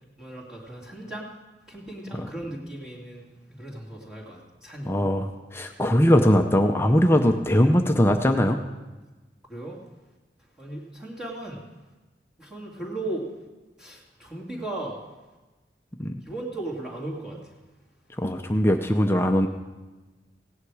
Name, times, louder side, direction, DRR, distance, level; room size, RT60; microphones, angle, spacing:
voice 1, 0.2-1.3 1.7-4.9 9.5-9.8 10.6-11.6 12.4-13.3 13.8-15.0 16.3-17.4, right 2 dB, 5° right, -5 dB, 2.5 m, -36 dB
voice 2, 4.8-8.6 16.0-16.2 18.1-19.5, equal, 15° left, 4 dB, 0.6 m, -21 dB
16.5 x 9.7 x 4.8 m, 1.2 s
head